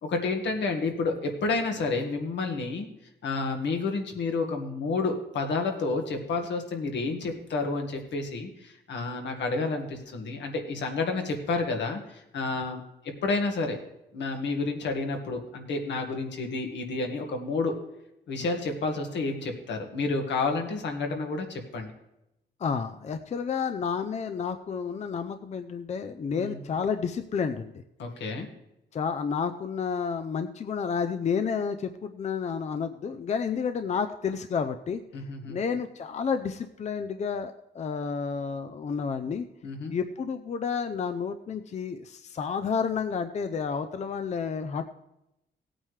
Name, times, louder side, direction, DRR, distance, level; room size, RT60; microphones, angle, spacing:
voice 1, 0.0-2.9 3.2-12.8 13.2-13.8 14.1-17.7 18.3-21.9 26.4-26.6 28.0-28.5 35.1-35.6 39.6-39.9, left 3 dB, 80° left, 3 dB, 1.8 m, -30 dB
voice 2, 22.6-27.8 28.9-35.0 35.5-39.5 39.9-44.9, left 6 dB, 40° left, 9 dB, 0.5 m, -30 dB
17.5 x 8.9 x 3.3 m, 0.87 s
wide cardioid pair, 155°, 18 cm